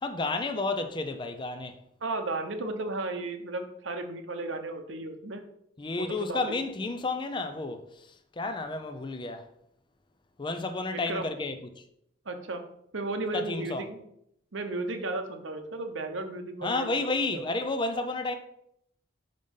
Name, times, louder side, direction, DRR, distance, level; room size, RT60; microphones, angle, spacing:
voice 1, 0.0-1.8 5.8-8.1 8.4-9.4 10.4-11.7 13.3-13.9 16.6-18.4, left 3 dB, 25° left, 0.5 m, -31 dB
voice 2, 2.0-5.4 6.0-6.6 10.9-11.3 12.2-12.6 12.9-14.0 14.5-16.9 17.3-17.4, right 2 dB, 80° right, 1.0 m, -34 dB
5.3 x 5.2 x 5.4 m
head